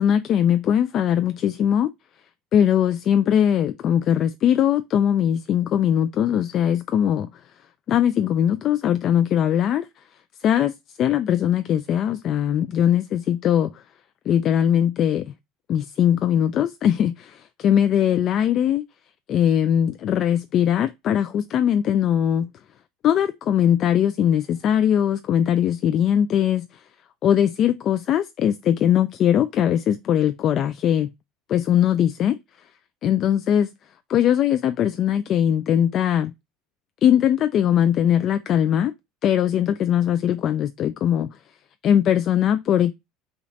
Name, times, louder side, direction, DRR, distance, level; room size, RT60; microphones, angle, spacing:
voice 1, 0.0-1.9 2.5-7.3 7.9-9.9 10.4-10.7 11.0-13.8 14.3-15.3 15.7-18.8 19.3-22.5 23.0-26.8 27.2-31.1 31.5-32.4 33.0-33.7 34.1-36.3 37.0-38.9 39.2-41.3 41.8-42.9, left 10 dB, 40° left, 0.3 m, -20 dB
5.1 x 2.5 x 3.9 m
cardioid pair, 140°, 0 cm